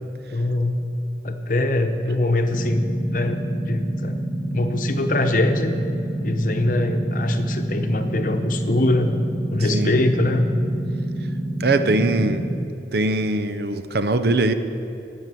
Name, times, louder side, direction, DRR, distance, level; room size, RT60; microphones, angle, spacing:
voice 1, 0.3-0.8 1.2-2.8 3.1-4.2 4.5-5.7 6.2-9.2 9.5-10.5, left 2 dB, 45° left, 7 dB, 0.9 m, -22 dB
sound 1, 2.5-12.6, right 1 dB, 15° right, 3.6 m, -28 dB
voice 2, 11.6-12.5 12.9-14.5, right 2 dB, 60° right, 10 dB, 0.7 m, -21 dB
12.5 x 9.2 x 7.7 m, 2.9 s
head